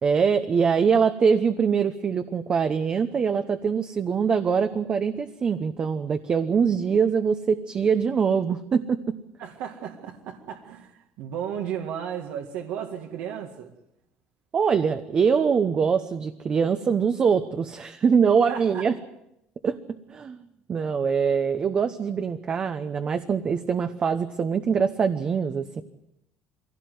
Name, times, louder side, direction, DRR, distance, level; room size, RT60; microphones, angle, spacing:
voice 1, 0.0-9.1 14.5-18.9 19.6-19.8 20.1-20.4 20.7-25.8, right 6 dB, 30° right, 8 dB, 1.0 m, -23 dB
voice 2, 9.4-13.7 18.5-18.8, right 9 dB, 75° right, 2 dB, 2.0 m, -34 dB
22.5 x 17.0 x 9.5 m, 0.81 s
cardioid pair, 130°, 3 cm